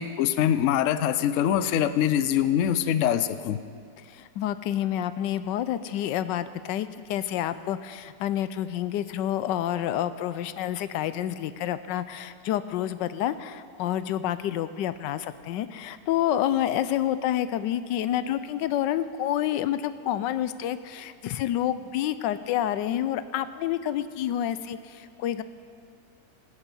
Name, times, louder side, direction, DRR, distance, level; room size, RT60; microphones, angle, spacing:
voice 1, 0.0-3.6, left 10 dB, 70° left, 12 dB, 0.7 m, -24 dB
voice 2, 4.1-25.4, left 11 dB, 85° left, 14 dB, 1.2 m, -28 dB
17.5 x 9.9 x 5.5 m, 2.2 s
omnidirectional pair, 1.9 m